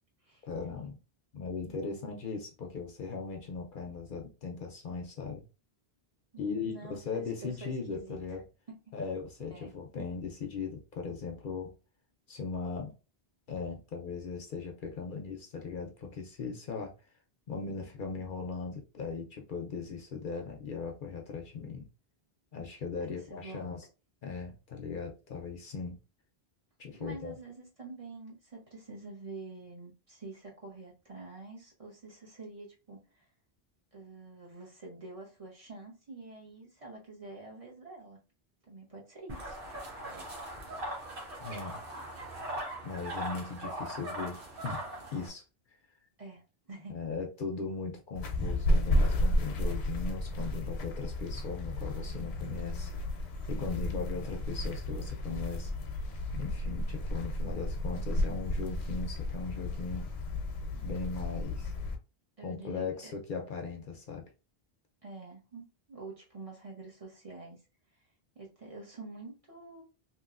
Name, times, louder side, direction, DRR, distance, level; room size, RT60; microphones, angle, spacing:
voice 1, 0.5-1.0 1.3-5.4 6.4-8.4 8.9-11.7 12.3-12.9 13.5-16.9 17.5-21.9 22.5-23.9 24.2-26.0 26.8-27.3 41.4-41.8 42.8-44.8 45.1-45.4 46.9-52.9 53.5-55.7 56.3-60.1 60.7-61.7 62.4-64.2, left 5 dB, 60° left, 2 dB, 0.7 m, -38 dB
voice 2, 6.3-8.2 8.7-8.8 9.5-9.7 23.0-23.7 26.9-33.3 33.9-38.2 38.7-39.6 46.2-47.0 53.9-54.1 62.4-63.1 65.0-67.6 68.3-69.8, right 3 dB, 35° right, -2 dB, 1.0 m, -47 dB
sound 1, 39.3-45.3, right 1 dB, 60° right, 1.2 m, -40 dB
sound 2, 48.2-62.0, left 1 dB, 85° left, 0.9 m, -32 dB
2.9 x 2.9 x 2.4 m, 0.31 s
omnidirectional pair, 1.1 m